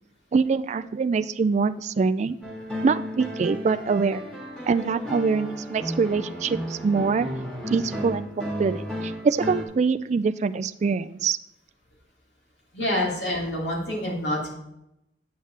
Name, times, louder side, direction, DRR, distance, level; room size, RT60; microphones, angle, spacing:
voice 1, 0.3-2.4 2.8-4.2 4.7-7.3 7.7-11.4, right 5 dB, 40° right, 10 dB, 0.3 m, -24 dB
sound 1, 2.4-9.6, equal, 5° left, 1.7 m, -33 dB
voice 2, 12.7-14.5, left 1 dB, 75° left, -3 dB, 3.1 m, -27 dB
8.9 x 8.1 x 3.3 m, 0.82 s
head